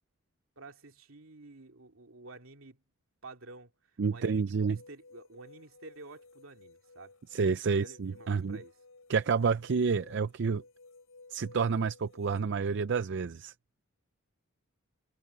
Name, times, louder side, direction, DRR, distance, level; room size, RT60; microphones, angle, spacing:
voice 1, 0.6-2.8 3.2-7.1 7.6-8.8, right 2 dB, 75° right, 2.7 m, -51 dB
voice 2, 4.0-4.8 7.3-8.6 9.1-10.6 11.3-13.5, right 5 dB, 55° right, 0.5 m, -29 dB
sound 1, 4.7-12.4, left 3 dB, 85° left, 5.3 m, -56 dB
head